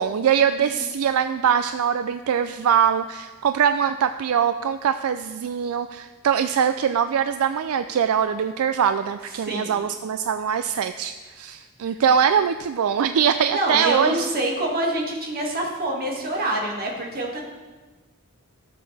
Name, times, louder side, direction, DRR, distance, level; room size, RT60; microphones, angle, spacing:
voice 1, 0.0-14.3, right 8 dB, 75° right, 10 dB, 0.4 m, -22 dB
voice 2, 9.4-9.8 11.9-12.0 13.5-17.4, right 1 dB, 45° right, -1 dB, 2.0 m, -26 dB
17.5 x 6.7 x 3.4 m, 1.3 s
head